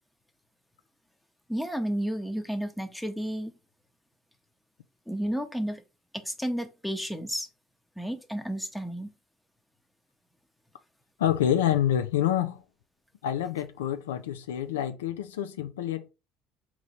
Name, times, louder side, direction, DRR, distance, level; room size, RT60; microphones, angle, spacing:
voice 1, 1.5-3.5 5.1-5.8 6.1-7.5 8.0-9.1, equal, 5° left, 0.8 m, -32 dB
voice 2, 11.2-12.6 13.2-16.1, left 10 dB, 85° left, 0.4 m, -27 dB
3.7 x 3.0 x 4.1 m
hypercardioid pair, 70°, 0 cm